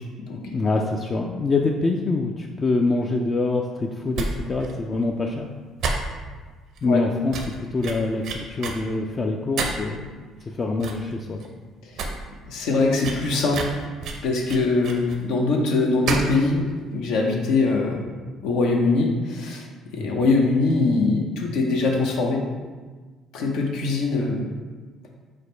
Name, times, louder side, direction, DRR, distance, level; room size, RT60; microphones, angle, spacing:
voice 1, 0.4-5.5 6.8-7.3 7.7-10.0 10.6-11.4 20.0-20.1, left 3 dB, 35° left, 1 dB, 0.3 m, -25 dB
sound 1, 4.1-4.3 4.6-4.7 5.0-5.1 5.8-6.4 6.8-6.9 7.3-8.8 9.6-9.9 10.4-10.5 10.8-11.1 11.4-11.5 11.8-12.1 12.4-12.5 13.0-15.2 16.1-16.4 16.6-16.7, right 4 dB, 70° right, 0.6 m, -29 dB
voice 2, 12.5-13.6 14.2-16.6 16.9-18.1 18.4-19.7 19.9-22.4 23.3-24.5, left 3 dB, 80° left, 0 dB, 0.7 m, -22 dB
4.9 x 2.1 x 4.3 m, 1.4 s
cardioid pair, 90°, 0 cm